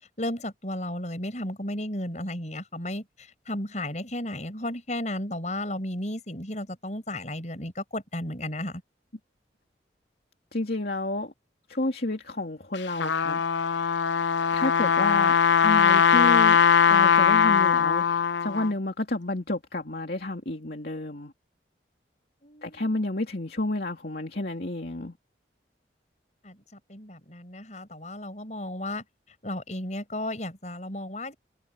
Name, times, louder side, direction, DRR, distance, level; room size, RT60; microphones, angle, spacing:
voice 1, 0.2-8.8 22.4-23.0 26.4-29.0 29.4-31.3, left 1 dB, 40° left, 7.8 m, -34 dB
voice 2, 10.5-11.3 11.7-13.8 14.5-15.3 15.6-16.6 16.9-21.3 22.6-25.2, left 2 dB, 55° left, 2.9 m, -30 dB
Trumpet, 12.7-18.7, left 7 dB, 85° left, 0.8 m, -20 dB
head